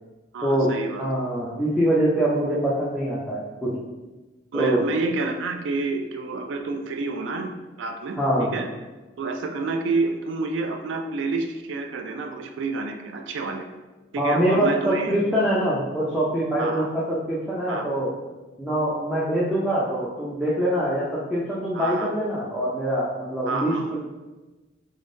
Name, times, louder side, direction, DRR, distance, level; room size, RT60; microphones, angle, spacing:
voice 1, 0.3-1.1 4.5-8.7 9.2-13.7 14.1-15.1 16.6-16.9 17.7-17.9 21.7-22.1 23.5-23.9, right 3 dB, 80° right, 4 dB, 0.3 m, -29 dB
voice 2, 1.0-3.8 4.5-4.8 8.2-8.5 14.2-18.1 18.6-24.0, right 1 dB, 5° right, -8 dB, 0.5 m, -24 dB
3.7 x 3.5 x 2.6 m, 1.2 s
head